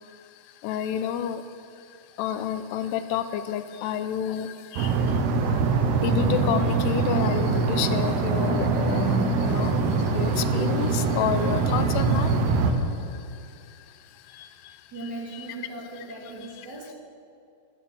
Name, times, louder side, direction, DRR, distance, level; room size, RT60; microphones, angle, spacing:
voice 1, 0.6-1.5 1.8-5.6 6.0-15.5, left 9 dB, 90° left, 11 dB, 2.9 m, -31 dB
sound 1, 4.8-12.7, right 4 dB, 80° right, 3.1 m, -23 dB
voice 2, 14.9-16.9, right 2 dB, 30° right, -4 dB, 2.7 m, -38 dB
14.5 x 11.5 x 7.2 m, 2.5 s
omnidirectional pair, 4.7 m